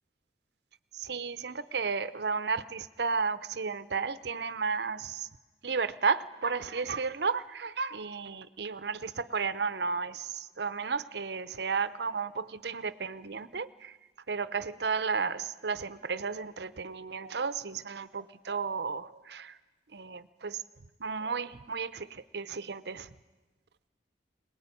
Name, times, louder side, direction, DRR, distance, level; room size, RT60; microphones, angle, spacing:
voice 1, 1.0-5.3 5.6-13.9 14.3-19.5 19.9-20.6 21.0-23.1, right 5 dB, 70° right, 15 dB, 0.7 m, -33 dB
23.0 x 19.5 x 9.8 m, 1.2 s
head